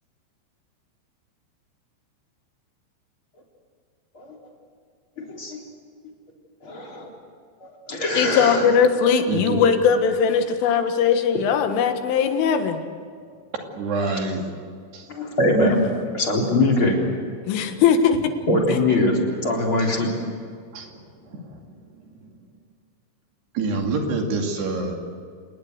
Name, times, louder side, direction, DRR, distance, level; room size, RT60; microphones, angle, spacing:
voice 1, 5.2-5.6 6.6-7.1 7.6-8.6 15.1-15.8 16.1-17.0 18.5-20.1, left 1 dB, 30° left, -1 dB, 4.0 m, -22 dB
voice 2, 8.1-12.8 17.5-18.2, left 7 dB, 85° left, 7 dB, 4.1 m, -19 dB
voice 3, 9.3-9.6 13.5-14.5 14.9-15.1 19.8-20.0 20.7-21.0 21.3-21.6 23.5-24.9, right 3 dB, 60° right, 2 dB, 4.4 m, -27 dB
29.0 x 19.0 x 8.1 m, 2.2 s
omnidirectional pair, 5.5 m